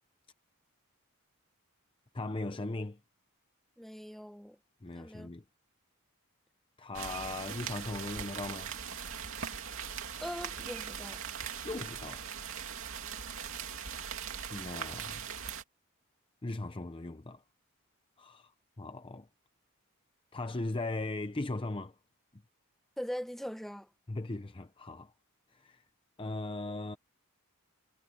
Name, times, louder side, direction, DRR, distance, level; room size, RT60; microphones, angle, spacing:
voice 1, 2.1-3.0 4.8-5.4 6.8-8.7 11.6-12.3 14.5-15.3 16.4-17.4 18.2-18.5 18.8-19.3 20.3-22.0 24.1-25.1 25.5-25.8 26.2-27.0, left 2 dB, 25° left, 0.7 m, -38 dB
voice 2, 3.8-4.6 4.9-5.3 10.2-11.2 23.0-23.9, equal, ahead, 1.3 m, -41 dB
sound 1, 6.9-15.6, right 7 dB, 65° right, 3.0 m, -40 dB
head